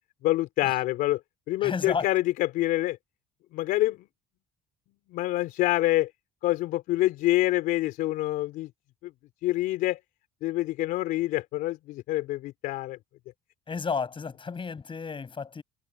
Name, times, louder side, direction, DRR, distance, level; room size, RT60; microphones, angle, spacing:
voice 1, 0.2-1.2 1.5-3.0 3.5-4.1 5.1-6.1 6.4-8.7 9.0-9.1 9.4-10.0 10.4-13.0, left 16 dB, 75° left, 3.9 m, -26 dB
voice 2, 1.6-2.1 13.7-15.6, left 5 dB, 35° left, 7.8 m, -32 dB
hypercardioid pair, 65°, 15 cm